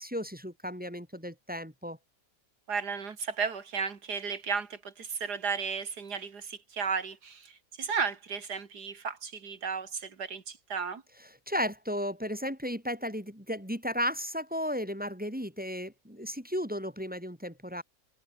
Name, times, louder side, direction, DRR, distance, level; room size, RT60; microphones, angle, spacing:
voice 1, 0.0-2.0 11.5-17.8, equal, 5° right, 2.7 m, -34 dB
voice 2, 2.7-11.0, right 5 dB, 80° right, 2.7 m, -34 dB
omnidirectional pair, 1.7 m